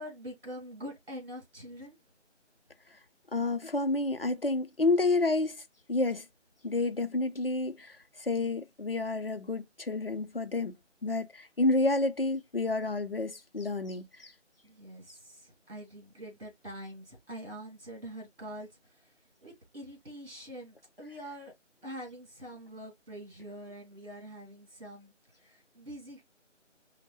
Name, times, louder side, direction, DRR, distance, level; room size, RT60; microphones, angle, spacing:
voice 1, 0.0-2.0 14.6-19.2 19.4-21.5 21.8-26.2, equal, 50° right, 2.4 m, -45 dB
voice 2, 3.3-5.6 5.9-6.3 6.6-10.7 11.0-14.3, left 2 dB, 50° left, 0.5 m, -29 dB
5.3 x 2.1 x 3.0 m
figure-of-eight pair, 170°, 37 cm